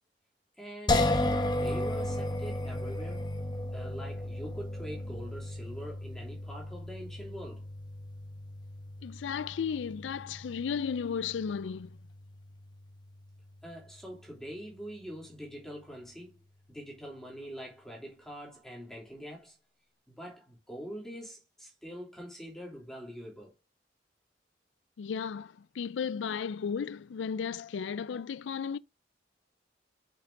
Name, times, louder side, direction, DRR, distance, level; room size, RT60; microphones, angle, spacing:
voice 1, 0.6-1.1 1.4-3.3 3.7-7.7 13.6-16.4 16.7-19.5 20.1-23.5, equal, 5° left, 3.1 m, -44 dB
sound 1, 0.9-14.0, left 1 dB, 25° left, 1.0 m, -35 dB
voice 2, 9.0-11.9 25.0-28.8, left 6 dB, 90° left, 0.4 m, -34 dB
6.9 x 5.7 x 3.8 m
head